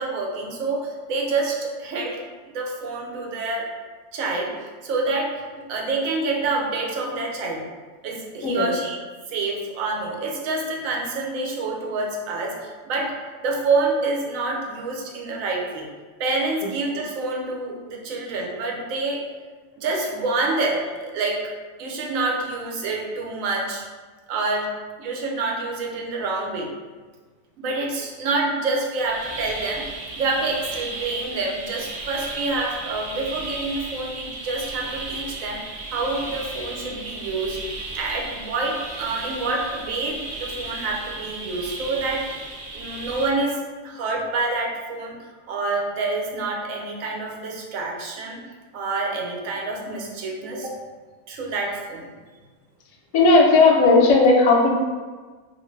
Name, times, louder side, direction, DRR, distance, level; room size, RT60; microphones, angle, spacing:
voice 1, 0.0-3.7 4.1-7.6 8.0-9.0 9.3-13.1 13.4-15.9 16.2-19.2 19.8-21.4 21.8-23.8 24.3-24.7 25.0-26.7 27.6-37.6 37.9-42.4 42.7-45.2 45.5-48.4 48.7-50.8 51.3-52.1, right 3 dB, 85° right, -1 dB, 1.0 m, -27 dB
sound 1, 28.9-43.3, right 2 dB, 60° right, 0.4 m, -35 dB
voice 2, 53.1-54.7, left 3 dB, 80° left, -1 dB, 1.0 m, -15 dB
2.7 x 2.5 x 3.0 m, 1.4 s
omnidirectional pair, 1.4 m